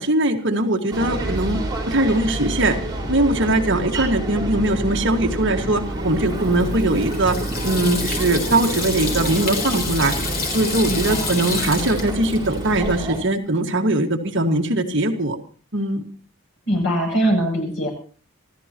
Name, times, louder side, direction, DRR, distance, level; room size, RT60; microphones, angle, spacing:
voice 1, 0.0-1.6 1.9-2.8 3.1-7.4 7.6-10.2 10.5-15.4 15.7-16.0, right 1 dB, 55° right, 3 dB, 1.9 m, -21 dB
sound 1, 0.9-13.2, right 1 dB, 20° right, 4.4 m, -28 dB
Water tap faucet / Sink (filling or washing), 6.2-13.0, left 3 dB, 45° left, 4.0 m, -29 dB
voice 2, 10.9-11.4 16.7-17.9, equal, 65° left, 0 dB, 7.8 m, -22 dB
26.5 x 14.5 x 3.0 m, 0.40 s
head